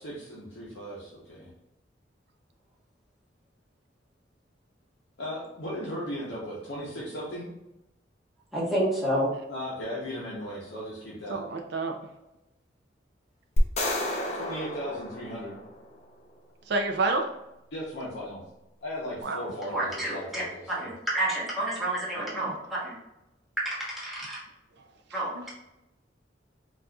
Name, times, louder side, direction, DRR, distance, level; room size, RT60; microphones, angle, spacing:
voice 1, 0.0-1.5 5.2-7.5 9.5-11.4 14.3-15.6 17.7-18.4 18.8-20.9, equal, 70° left, -6 dB, 0.8 m, -37 dB
voice 2, 8.5-9.3 19.7-23.0 23.6-24.4 25.1-25.5, right 1 dB, ahead, -8 dB, 1.1 m, -29 dB
voice 3, 11.3-12.0 16.7-17.3 19.2-19.4, right 3 dB, 65° right, 4 dB, 0.4 m, -28 dB
sound 1, 13.6-15.9, left 1 dB, 35° left, 0.5 m, -29 dB
4.0 x 2.4 x 2.3 m, 0.91 s
head